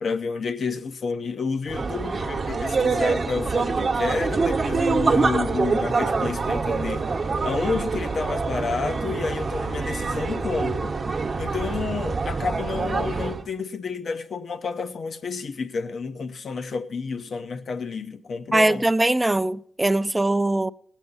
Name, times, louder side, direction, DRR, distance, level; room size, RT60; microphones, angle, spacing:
voice 1, 0.0-7.1 7.4-11.0 11.4-18.9, left 4 dB, 60° left, 0.8 m, -30 dB
sound 1, 1.7-13.4, right 4 dB, 50° right, 1.0 m, -25 dB
voice 2, 18.5-20.7, right 1 dB, 15° right, 0.5 m, -21 dB
19.0 x 8.2 x 4.0 m
hypercardioid pair, 40°, 0 cm